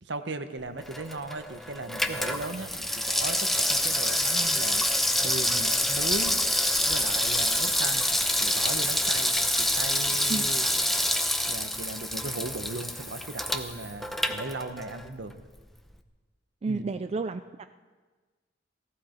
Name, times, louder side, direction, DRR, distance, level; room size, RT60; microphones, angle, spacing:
voice 1, 0.0-4.9 5.2-6.4 6.8-8.1 8.4-10.7 11.5-15.3 16.6-16.8, right 2 dB, 65° right, 9 dB, 1.0 m, -37 dB
Water tap faucet / Sink (filling or washing), 0.8-15.1 15.4-15.5, left 1 dB, ahead, 0.7 m, -27 dB
voice 2, 16.6-17.7, right 3 dB, 30° right, 9 dB, 0.3 m, -31 dB
17.5 x 14.5 x 4.4 m, 1.4 s
head